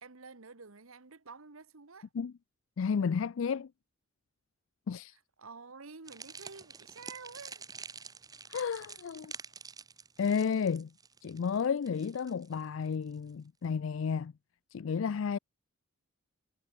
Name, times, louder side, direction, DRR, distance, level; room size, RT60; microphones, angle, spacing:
voice 1, 0.0-2.1 5.4-7.6, right 4 dB, 85° right, 1.5 m, -49 dB
voice 2, 2.8-3.7 4.9-5.2 8.5-9.3 10.2-10.9 11.2-14.3 14.7-15.4, left 6 dB, 65° left, 0.4 m, -32 dB
sound 1, 6.1-13.3, right 5 dB, 20° right, 1.1 m, -48 dB
head